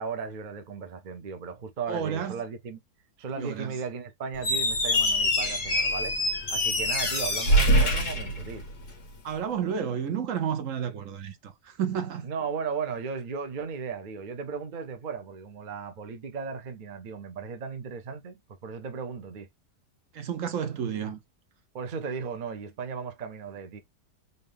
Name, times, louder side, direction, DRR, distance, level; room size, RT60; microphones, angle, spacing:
voice 1, 0.0-2.8 3.2-6.1 6.5-8.7 12.2-19.5 21.7-23.8, right 5 dB, 75° right, 0.4 m, -36 dB
voice 2, 1.9-2.4 3.3-3.8 9.2-12.3 20.1-21.2, right 8 dB, 60° right, 0.9 m, -31 dB
Squeak, 4.3-9.0, equal, 65° left, 1.7 m, -24 dB
4.0 x 2.5 x 3.3 m
omnidirectional pair, 1.8 m